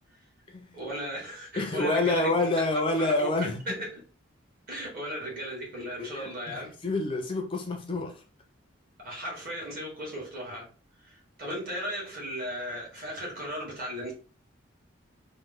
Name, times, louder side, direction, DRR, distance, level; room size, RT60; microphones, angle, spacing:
voice 1, 0.7-4.0 4.7-6.7 9.0-10.7 11.0-14.1, equal, 45° right, 1.4 m, -36 dB
voice 2, 1.5-3.6 6.0-8.1, left 2 dB, 25° left, 0.4 m, -28 dB
3.1 x 2.0 x 3.4 m
head